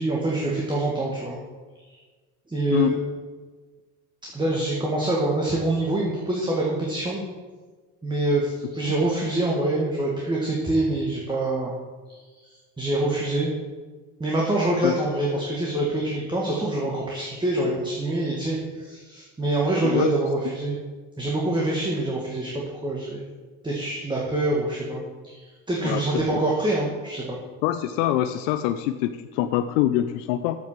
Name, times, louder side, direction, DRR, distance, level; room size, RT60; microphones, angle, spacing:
voice 1, 0.0-1.4 1.9-2.0 2.5-2.9 4.3-7.2 8.0-11.7 12.1-13.5 14.2-20.8 21.2-23.2 23.6-27.4, right 2 dB, 15° right, -4 dB, 1.8 m, -25 dB
voice 2, 25.8-26.4 27.6-30.6, left 12 dB, 85° left, 10 dB, 0.5 m, -24 dB
7.5 x 5.9 x 7.3 m, 1.4 s
supercardioid pair, 85°, 35 cm